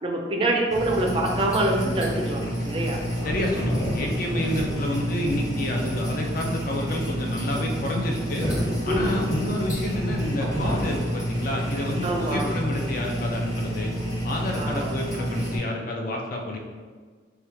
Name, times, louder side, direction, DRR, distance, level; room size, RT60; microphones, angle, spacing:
voice 1, 0.0-3.0 8.9-9.1 12.0-12.5 14.5-15.0, right 1 dB, 30° right, 0 dB, 0.4 m, -25 dB
sound 1, 0.7-15.6, equal, 20° left, 0.8 m, -28 dB
voice 2, 3.2-8.5 8.9-13.9 14.2-16.6, left 1 dB, 50° left, 1 dB, 0.4 m, -29 dB
sound 2, 3.3-4.3 4.5-5.6 8.9-11.2, right 1 dB, 80° left, 1.4 m, -34 dB
3.0 x 2.2 x 3.4 m, 1.5 s
head